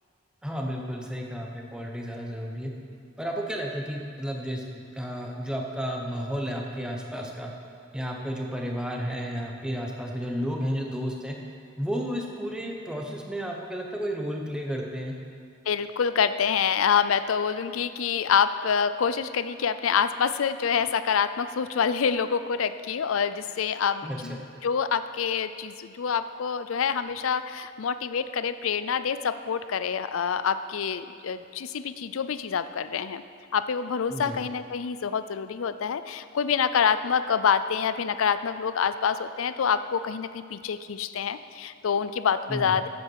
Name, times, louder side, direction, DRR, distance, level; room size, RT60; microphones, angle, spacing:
voice 1, 0.4-2.7 3.2-7.5 7.9-11.4 11.8-15.1 24.0-24.4 34.1-34.4 42.5-42.8, equal, 5° right, 0 dB, 1.0 m, -32 dB
voice 2, 15.7-33.2 33.5-42.9, left 7 dB, 85° left, 12 dB, 0.5 m, -26 dB
14.0 x 8.2 x 4.7 m, 2.2 s
head